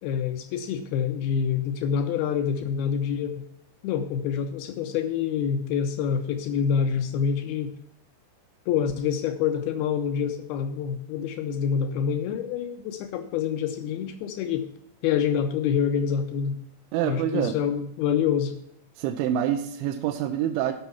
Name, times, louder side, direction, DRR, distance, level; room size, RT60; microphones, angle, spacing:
voice 1, 0.0-3.5 3.8-7.7 8.7-14.7 15.0-16.6 17.0-18.6, left 7 dB, 90° left, 7 dB, 2.1 m, -26 dB
voice 2, 16.9-17.6 19.0-20.7, right 10 dB, 85° right, 5 dB, 3.1 m, -26 dB
13.5 x 5.8 x 5.6 m, 0.75 s
omnidirectional pair, 5.4 m